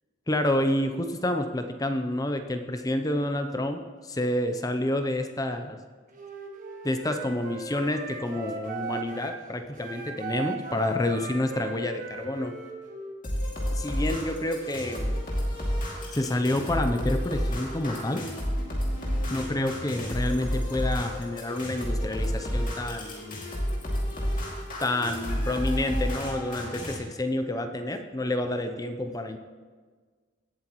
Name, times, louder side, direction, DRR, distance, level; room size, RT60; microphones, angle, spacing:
voice 1, 0.3-5.8 6.8-12.6 13.7-15.2 16.1-18.2 19.3-23.4 24.8-29.4, left 1 dB, 20° left, 7 dB, 0.5 m, -29 dB
Wind instrument woodwind instrument, 6.1-9.4 9.7-13.1, right 3 dB, 40° right, 1.3 m, -37 dB
sound 1, 13.2-26.9, equal, 40° left, 2.4 m, -30 dB
17.0 x 7.9 x 3.0 m, 1.5 s
head